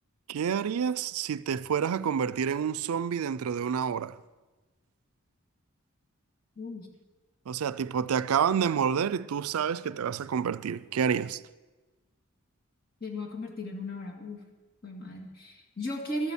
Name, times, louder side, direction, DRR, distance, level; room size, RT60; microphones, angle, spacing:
voice 1, 0.3-4.2 7.5-11.4, right 7 dB, 80° right, 0.4 m, -28 dB
voice 2, 6.6-6.9 13.0-14.4 14.8-16.3, left 1 dB, 45° left, 2.1 m, -36 dB
13.5 x 8.4 x 7.1 m
head